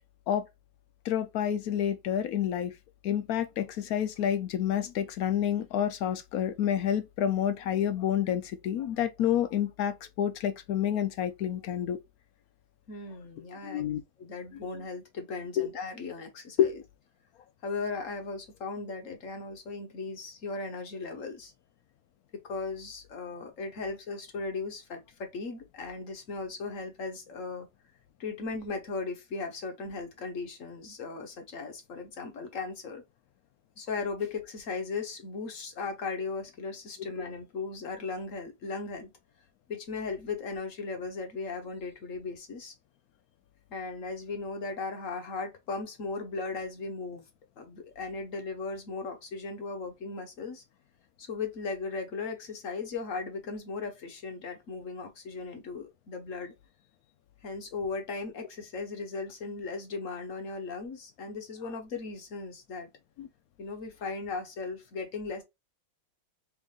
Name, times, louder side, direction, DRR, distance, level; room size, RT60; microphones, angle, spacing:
voice 1, 1.0-2.7 3.0-12.0 13.6-14.0 15.6-15.7 16.6-16.7 63.2-63.3, left 10 dB, 70° left, 0.9 m, -29 dB
voice 2, 12.9-13.9 14.2-16.8 17.6-21.5 22.3-27.7 28.2-33.0 33.8-39.1 39.7-42.7 43.7-47.2 47.6-50.6 51.2-56.5 57.4-62.9 63.6-65.4, left 4 dB, 50° left, 1.2 m, -37 dB
3.6 x 3.6 x 2.3 m
omnidirectional pair, 1.9 m